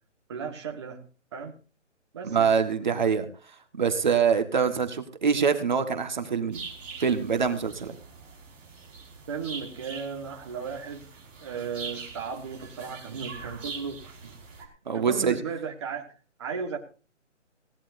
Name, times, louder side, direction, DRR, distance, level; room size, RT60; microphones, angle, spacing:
voice 1, 0.3-1.0 1.3-1.6 2.1-2.5 9.3-11.1 11.4-14.4 14.9-16.1 16.4-16.8, right 6 dB, 20° right, 1 dB, 1.5 m, -35 dB
voice 2, 2.2-3.3 3.8-6.6 7.0-7.9 14.9-15.3, right 6 dB, 40° right, 7 dB, 1.5 m, -24 dB
sound 1, 6.5-14.6, right 4 dB, 5° right, 1.0 m, -43 dB
20.0 x 17.0 x 2.6 m, 0.37 s
hypercardioid pair, 170°, 37 cm